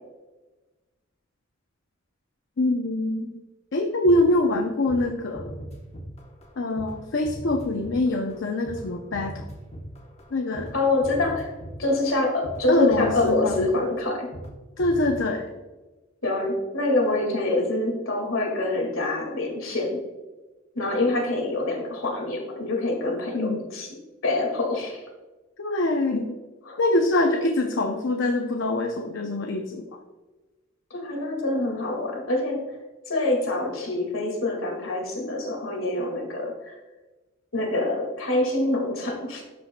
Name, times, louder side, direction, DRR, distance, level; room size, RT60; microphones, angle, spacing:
voice 1, 2.6-3.4 3.7-5.5 6.6-9.4 10.3-10.7 12.7-13.7 14.8-15.5 23.3-23.6 25.6-26.3 26.8-29.8, left 2 dB, 65° left, 3 dB, 0.6 m, -24 dB
sound 1, 4.0-4.6 4.9-5.1 5.3-6.5 6.8-14.5 14.8-15.2, equal, 30° left, 0.9 m, -39 dB
voice 2, 10.7-11.5 11.8-14.3 16.2-20.0 20.8-23.9 24.2-25.0 26.7-26.8 30.9-32.6 33.1-36.7 37.5-39.4, left 2 dB, 80° left, 2 dB, 2.0 m, -25 dB
12.5 x 5.2 x 2.2 m, 1.2 s
head